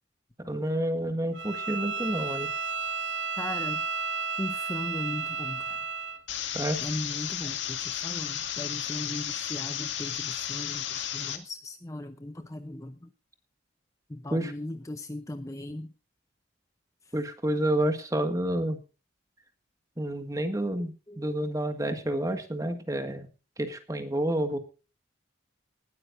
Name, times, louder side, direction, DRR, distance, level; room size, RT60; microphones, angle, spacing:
voice 1, 0.4-2.5 6.5-6.8 14.3-14.5 17.1-18.8 20.0-23.3 23.6-24.6, right 1 dB, 15° right, 7 dB, 1.7 m, -29 dB
Bowed string instrument, 1.3-6.2, right 5 dB, 65° right, 0.8 m, -32 dB
voice 2, 3.4-3.8 4.4-5.8 6.8-13.1 14.1-15.9 20.5-21.4, left 1 dB, 15° left, 9 dB, 0.6 m, -38 dB
sound 1, 6.3-11.4, left 10 dB, 65° left, 2.0 m, -33 dB
19.0 x 13.0 x 2.6 m, 0.33 s
head